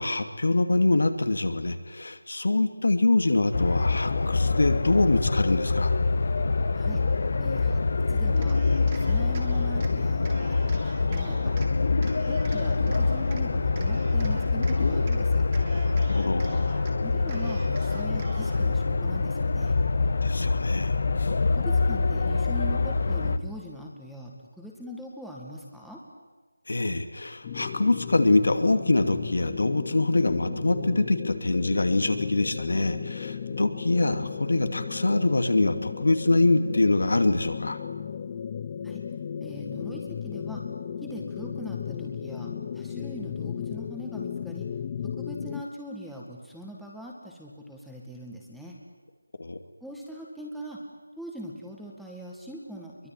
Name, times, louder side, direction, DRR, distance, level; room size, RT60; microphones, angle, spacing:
voice 1, 0.0-5.9 16.1-16.5 20.2-21.0 26.7-37.8 49.4-49.6, left 2 dB, 70° left, 8 dB, 2.5 m, -24 dB
sound 1, 3.5-23.4, left 4 dB, 50° left, 1.4 m, -25 dB
voice 2, 7.4-7.8 8.1-8.6 8.9-11.5 12.3-15.5 17.0-19.7 21.5-26.0 38.8-39.0 39.4-40.6 41.0-44.7 45.1-48.8 49.8-50.8 51.2-53.1, equal, ahead, -3 dB, 2.0 m, -41 dB
Cheering, 8.4-9.9 10.2-11.7 12.0-13.4 13.8-15.2 15.5-16.9 17.3-18.7, right 4 dB, 25° right, 2.8 m, -46 dB
sound 2, 27.4-45.6, left 7 dB, 25° left, 0.7 m, -35 dB
23.5 x 22.0 x 9.4 m, 1.3 s
figure-of-eight pair, 170°, 0 cm